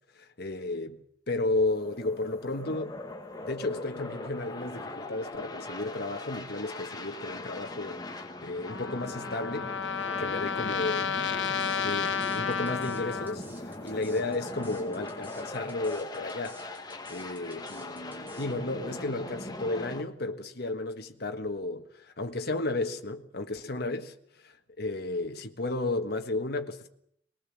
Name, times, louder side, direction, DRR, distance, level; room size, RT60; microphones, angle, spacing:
voice 1, 0.1-3.0 3.4-9.8 10.2-11.2 11.8-16.6 17.1-24.1 24.8-26.9, left 2 dB, 60° left, 1.5 m, -33 dB
sound 1, 1.7-20.0, left 2 dB, 20° left, 1.8 m, -40 dB
Trumpet, 8.7-13.4, left 6 dB, 80° left, 1.4 m, -32 dB
sound 2, 11.4-18.5, equal, 10° right, 5.4 m, -53 dB
24.5 x 20.5 x 7.5 m
head